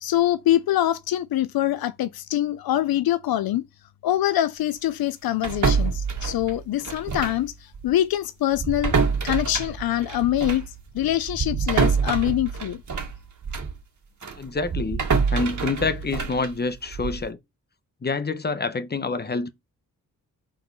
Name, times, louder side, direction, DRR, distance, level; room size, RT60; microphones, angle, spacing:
voice 1, 0.0-3.6 4.0-7.5 7.8-8.9 9.2-10.7 10.9-12.8, left 13 dB, 85° left, 0.5 m, -24 dB
sound 1, 5.4-7.5 7.7-7.9 8.5-13.8 14.2-17.3, right 5 dB, 55° right, 1.7 m, -26 dB
voice 2, 14.4-15.0 15.3-17.4 18.0-19.5, left 4 dB, 30° left, 1.0 m, -27 dB
6.5 x 3.8 x 5.4 m
cardioid pair, 80°, 35 cm